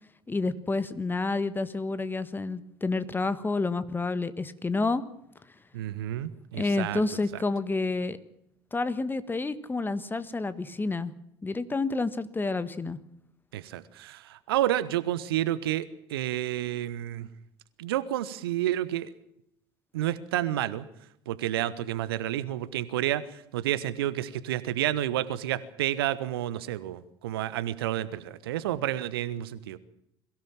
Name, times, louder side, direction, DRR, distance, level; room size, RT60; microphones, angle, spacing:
voice 1, 0.3-5.0 6.5-8.2 8.7-11.1 11.4-13.0, left 3 dB, 15° left, 14 dB, 1.6 m, -29 dB
voice 2, 5.7-7.0 13.5-17.3 17.8-19.1 19.9-20.8 21.3-23.2 23.5-29.8, right 13 dB, 65° right, 17 dB, 1.2 m, -30 dB
22.5 x 16.5 x 7.4 m, 0.77 s
figure-of-eight pair, 65°, 13 cm